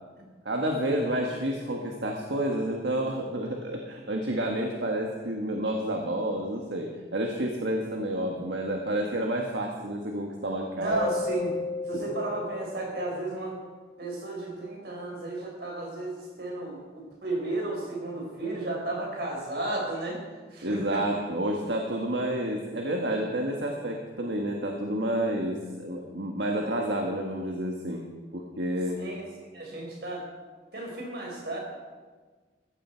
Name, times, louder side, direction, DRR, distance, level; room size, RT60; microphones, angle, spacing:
voice 1, 0.4-11.1 11.9-12.0 20.6-28.0 28.3-29.0, right 1 dB, 80° right, 1 dB, 1.5 m, -30 dB
voice 2, 10.8-11.5 11.9-13.6 14.0-20.2 20.5-21.0 29.0-30.3 30.7-31.6, right 2 dB, 65° right, -1 dB, 4.5 m, -33 dB
Keyboard (musical), 10.9-13.6, left 4 dB, 10° left, 1.7 m, -35 dB
15.5 x 14.5 x 4.5 m, 1.4 s
head